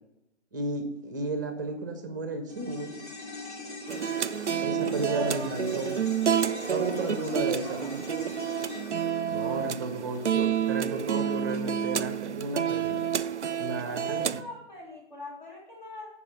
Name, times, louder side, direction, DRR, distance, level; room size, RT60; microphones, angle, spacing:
voice 1, 0.5-3.0 4.6-5.9 6.7-7.9 9.2-13.0 13.6-14.4, right 2 dB, 15° right, 6 dB, 0.7 m, -33 dB
sound 1, 2.5-11.0 11.3-11.4, left 3 dB, 70° left, 2.8 m, -43 dB
sound 2, 3.9-14.4, right 8 dB, 80° right, 0.5 m, -29 dB
voice 2, 5.1-5.6 6.4-7.0 7.2-8.4 13.8-16.1, left 1 dB, 40° left, -3 dB, 2.0 m, -42 dB
Laughter, 6.6-8.8 9.2-11.6, left 1 dB, 15° left, 1.4 m, -51 dB
11.0 x 4.8 x 4.9 m, 0.85 s
figure-of-eight pair, 140°, 35 cm